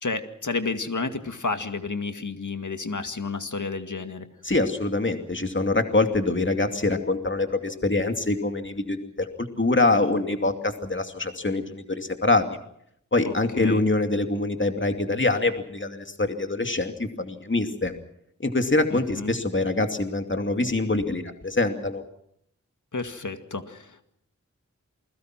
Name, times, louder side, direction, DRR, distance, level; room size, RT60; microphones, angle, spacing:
voice 1, 0.0-4.3 13.3-13.8 18.9-19.4 22.9-24.0, left 3 dB, 75° left, 7 dB, 2.2 m, -31 dB
voice 2, 4.4-12.5 13.1-17.9 18.4-22.0, left 2 dB, 40° left, 5 dB, 2.5 m, -24 dB
28.5 x 21.5 x 6.0 m, 0.72 s
wide cardioid pair, 55°, 30 cm